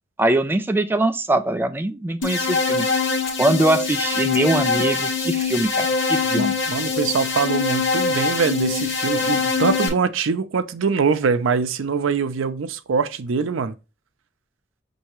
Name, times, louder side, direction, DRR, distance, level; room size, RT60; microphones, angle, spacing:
voice 1, 0.2-2.9 3.4-6.5, right 1 dB, 10° right, 0.3 m, -22 dB
sound 1, 2.2-9.9, left 4 dB, 70° left, 1.0 m, -23 dB
voice 2, 6.2-13.7, right 5 dB, 85° right, 0.5 m, -23 dB
5.6 x 2.7 x 3.0 m
head